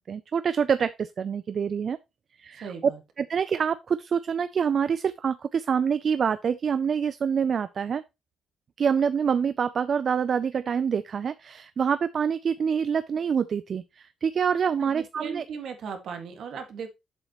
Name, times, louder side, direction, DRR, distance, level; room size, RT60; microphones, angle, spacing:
voice 1, 0.1-2.0 2.4-2.7 3.2-8.0 8.8-15.4, right 7 dB, 35° right, 0.3 m, -26 dB
voice 2, 2.6-3.0 14.7-16.9, right 6 dB, 55° right, 1.8 m, -37 dB
8.0 x 7.5 x 3.0 m
cardioid pair, 170°, 0 cm